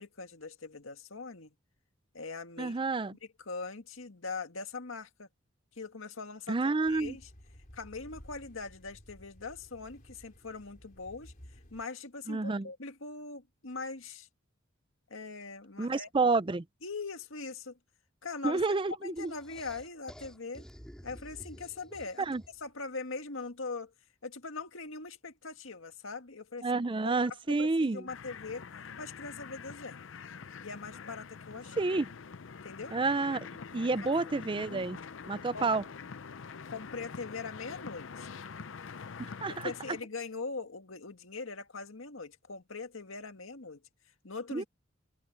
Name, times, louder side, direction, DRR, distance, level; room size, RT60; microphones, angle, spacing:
voice 1, 0.0-1.5 2.1-2.8 3.1-5.3 5.8-6.6 6.9-7.3 7.7-11.3 11.7-14.3 15.1-16.1 16.8-17.8 18.2-18.6 19.0-20.7 21.0-22.3 22.6-23.9 24.2-26.8 27.5-28.7 29.0-30.0 30.6-31.8 32.6-33.0 34.0-34.1 34.4-34.8 35.5-35.8 36.7-38.4 39.6-43.8 44.2-44.6, left 4 dB, 85° left, 1.9 m, -41 dB
voice 2, 2.6-3.2 6.5-7.2 12.3-12.7 15.8-16.6 18.4-19.3 22.2-22.4 26.6-28.0 31.8-32.1 32.9-33.5 33.7-35.0 35.3-35.8 39.2-39.7 44.5-44.6, right 3 dB, 25° right, 0.5 m, -29 dB
sound 1, 6.8-11.8, equal, 45° left, 4.3 m, -54 dB
sound 2, 19.2-22.7, equal, 5° left, 2.2 m, -51 dB
sound 3, 28.1-40.0, left 5 dB, 70° left, 0.6 m, -45 dB
head